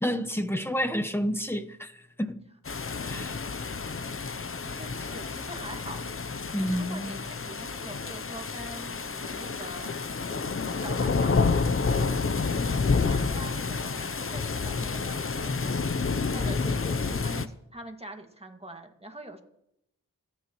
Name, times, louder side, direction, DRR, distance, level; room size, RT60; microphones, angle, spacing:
voice 1, 0.0-1.9 2.2-2.4 3.0-3.3 6.5-7.1, equal, 5° left, 1.1 m, -29 dB
sound 1, 2.7-17.5, left 4 dB, 40° left, 0.7 m, -29 dB
voice 2, 2.8-3.7 4.1-10.2 10.7-15.6 15.9-19.4, right 1 dB, 15° right, 2.1 m, -45 dB
27.0 x 10.0 x 3.1 m
cardioid pair, 40°, 34 cm